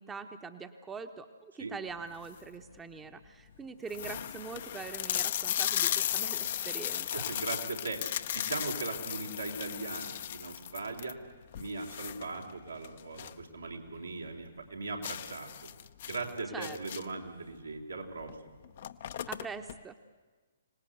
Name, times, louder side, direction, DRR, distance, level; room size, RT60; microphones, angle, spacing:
voice 1, 0.0-7.2 16.5-16.8 19.3-20.0, right 5 dB, 10° right, 7 dB, 1.0 m, -43 dB
sound 1, 2.1-2.5 3.2-3.3 3.5-3.6 3.9-13.5 13.8-13.9 14.3-14.4 15.0-17.3 18.2-18.3 18.6-19.8, left 10 dB, 50° left, 0.8 m, -35 dB
voice 2, 7.1-8.0 8.3-11.2 11.5-15.7 16.0-18.5, right 3 dB, 80° right, 1 dB, 4.1 m, -39 dB
25.5 x 18.5 x 8.2 m, 1.3 s
figure-of-eight pair, 125°, 0 cm